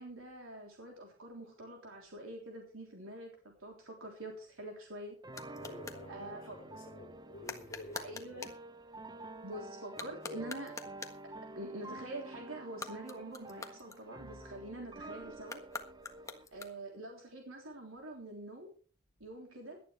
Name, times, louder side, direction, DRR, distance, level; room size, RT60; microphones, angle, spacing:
voice 1, 0.0-5.2 6.1-6.6 7.9-8.5 9.4-10.7 11.6-15.6 16.5-18.7 19.2-19.8, right 1 dB, 85° right, 3.5 m, -45 dB
sound 1, 4.3-6.1 7.4-8.6 9.8-11.3 12.6-14.5 15.4-17.0, left 3 dB, 15° left, 1.5 m, -46 dB
sound 2, 5.2-16.5, right 2 dB, 20° right, 0.7 m, -49 dB
voice 2, 5.6-8.5 9.2-9.5 16.3-16.7, left 1 dB, 45° left, 4.1 m, -51 dB
18.5 x 12.0 x 3.4 m
head